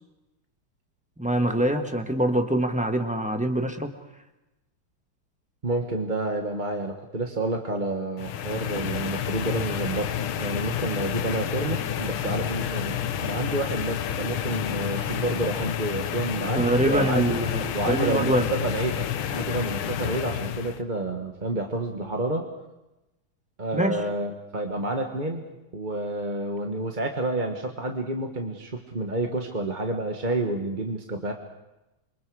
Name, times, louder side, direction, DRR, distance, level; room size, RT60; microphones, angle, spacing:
voice 1, 1.2-3.9 16.5-18.5 23.7-24.0, right 1 dB, 5° right, 5 dB, 1.1 m, -24 dB
voice 2, 5.6-17.3 17.7-22.5 23.6-25.5 25.7-31.3, right 2 dB, 25° right, 3 dB, 1.4 m, -29 dB
sound 1, 8.2-20.8, left 10 dB, 75° left, 1.8 m, -30 dB
28.0 x 25.0 x 4.9 m, 0.97 s
omnidirectional pair, 2.4 m